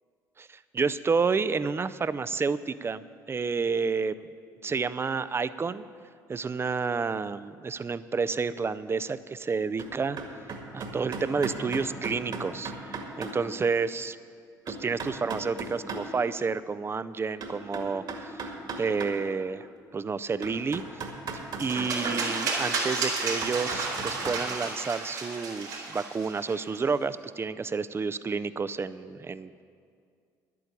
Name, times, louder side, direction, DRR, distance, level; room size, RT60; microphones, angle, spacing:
voice 1, 0.4-3.0 3.3-4.3 4.6-5.9 6.3-10.2 10.7-14.2 14.7-19.7 19.9-21.1 21.6-29.6, right 5 dB, 25° right, 15 dB, 0.5 m, -30 dB
sound 1, 9.8-9.9 10.2-13.3 13.9-14.0 14.7-16.0 17.4-19.1 19.7-19.8 20.4-22.2 23.4-24.3, right 4 dB, 55° right, 2.0 m, -36 dB
sound 2, 21.6-26.8, right 3 dB, 90° right, 2.6 m, -32 dB
11.0 x 8.5 x 8.1 m, 2.2 s
hypercardioid pair, 60°, 9 cm